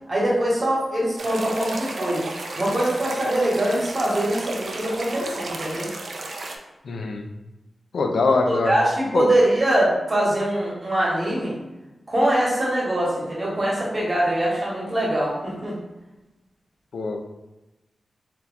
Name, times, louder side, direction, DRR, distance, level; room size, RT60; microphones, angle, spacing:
voice 1, 0.1-2.2 2.6-5.9 8.5-11.5 12.1-15.7, right 1 dB, 30° right, -5 dB, 1.1 m, -23 dB
sound 1, 1.2-6.6, right 2 dB, 60° right, 0.4 m, -33 dB
voice 2, 6.8-7.3 7.9-8.8 9.1-9.3 16.9-17.2, left 3 dB, 85° left, 3 dB, 0.3 m, -23 dB
2.9 x 2.2 x 3.8 m, 1.0 s
wide cardioid pair, 110°, 0 cm